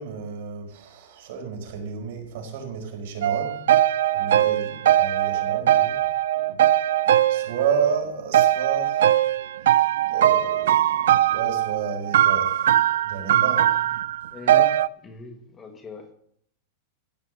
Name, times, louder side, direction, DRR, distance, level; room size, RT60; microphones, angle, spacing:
voice 1, 0.0-3.6 4.1-6.0 7.3-9.4 9.9-13.7, right 6 dB, 55° right, 0 dB, 4.8 m, -31 dB
sound 1, 3.2-8.0 8.3-14.9, right 12 dB, 80° right, 0.5 m, -20 dB
voice 2, 14.3-16.1, left 3 dB, 15° left, 4 dB, 1.3 m, -41 dB
15.5 x 5.6 x 8.1 m, 0.67 s
supercardioid pair, 175°, 0 cm